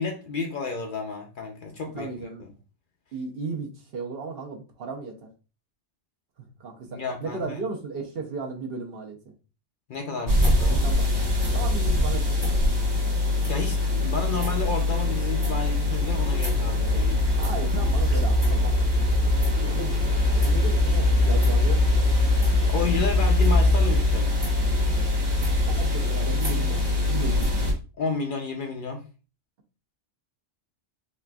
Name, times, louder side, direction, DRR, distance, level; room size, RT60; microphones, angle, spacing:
voice 1, 0.0-2.1 6.8-7.6 9.9-10.9 13.5-17.2 22.6-24.4 28.0-29.0, left 4 dB, 55° left, 0.6 m, -31 dB
voice 2, 1.9-2.5 3.1-5.3 6.6-9.2 10.8-11.2 11.5-12.8 17.4-19.3 19.6-22.0 25.7-27.4, right 4 dB, 60° right, 0.8 m, -35 dB
sound 1, 10.3-27.7, left 2 dB, 25° right, 0.8 m, -22 dB
4.0 x 2.5 x 2.2 m
omnidirectional pair, 1.2 m